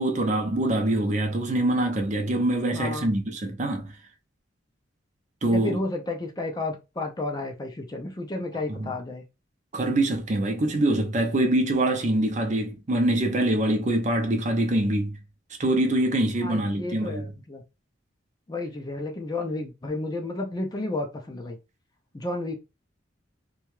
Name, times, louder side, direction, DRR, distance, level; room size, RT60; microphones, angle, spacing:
voice 1, 0.0-3.9 5.4-5.8 8.7-8.9 9.7-15.2 15.6-17.3, right 1 dB, 40° right, 0.5 m, -24 dB
voice 2, 2.7-3.1 5.5-9.2 16.4-17.6 18.5-21.6 22.1-22.6, left 2 dB, 20° left, 0.4 m, -32 dB
2.7 x 2.2 x 3.1 m
head